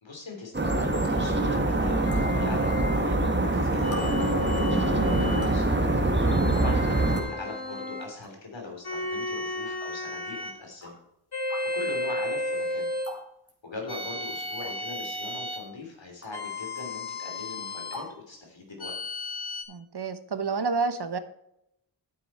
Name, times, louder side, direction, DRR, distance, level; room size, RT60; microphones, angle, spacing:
voice 1, 0.0-5.9 6.5-6.8 7.1-11.0 11.7-12.9 13.6-18.9, left 3 dB, 80° left, 1 dB, 3.1 m, -40 dB
sound 1, 0.5-7.2, right 2 dB, 25° right, 1.5 m, -24 dB
sound 2, 2.0-3.1 3.8-5.6 6.2-8.1 8.8-10.6 11.3-13.1 13.9-15.7 16.3-18.0 18.8-19.6, left 1 dB, 55° left, 1.8 m, -33 dB
sound 3, 2.1-2.2 3.2-3.3 3.9-4.0 5.2-5.6 6.6-6.7 7.2-7.3 8.0-8.3 8.8-8.9 9.9-10.0 10.8-11.0 11.5-11.7 13.0-13.2 13.5-13.6 14.6-15.0 16.2-16.4 16.8-16.9 17.9-18.1, equal, 30° left, 3.0 m, -42 dB
voice 2, 19.7-21.2, right 4 dB, 60° right, 11 dB, 1.0 m, -30 dB
9.4 x 7.4 x 4.3 m, 0.80 s
wide cardioid pair, 55°, 44 cm